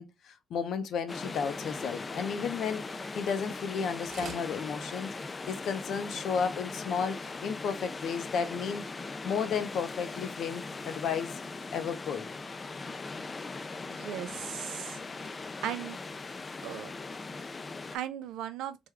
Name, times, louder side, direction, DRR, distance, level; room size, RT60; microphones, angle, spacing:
voice 1, 0.0-5.1 5.5-8.8 9.2-11.4 11.7-12.3, left 6 dB, 70° left, 0.6 m, -33 dB
sound 1, 1.1-18.0, left 3 dB, 30° left, 0.3 m, -40 dB
Zimmer Walker Frame on wooden floor, 4.0-4.5 5.0-5.1 5.4-5.5 5.7-5.8 6.4-6.5, right 5 dB, 55° right, 0.8 m, -44 dB
voice 2, 13.9-15.0 15.6-16.0 16.6-16.9 17.9-18.8, right 11 dB, 90° right, 0.4 m, -37 dB
3.4 x 2.2 x 3.3 m
cardioid pair, 90°, 0 cm